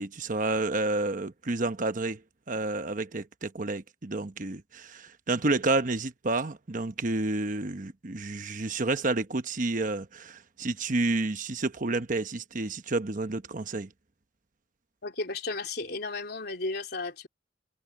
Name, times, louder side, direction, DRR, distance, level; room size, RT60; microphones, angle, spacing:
voice 1, 0.0-2.2 2.5-13.9, right 2 dB, 45° right, 1.0 m, -30 dB
voice 2, 15.0-17.3, left 3 dB, 60° left, 3.6 m, -34 dB
head